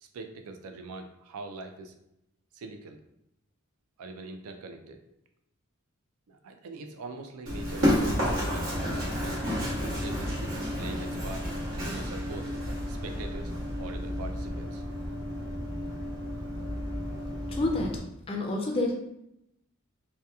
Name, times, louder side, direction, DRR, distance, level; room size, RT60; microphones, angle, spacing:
voice 1, 0.0-1.9 2.5-3.0 4.0-5.0 6.3-9.5 9.8-12.5 12.9-13.5 13.8-14.8, right 3 dB, 85° right, 6 dB, 0.4 m, -43 dB
Run, 7.5-18.0, equal, 60° right, 1.0 m, -31 dB
voice 2, 17.5-18.0 18.3-18.9, left 2 dB, 25° left, 0 dB, 0.4 m, -28 dB
2.8 x 2.2 x 2.3 m, 0.80 s
head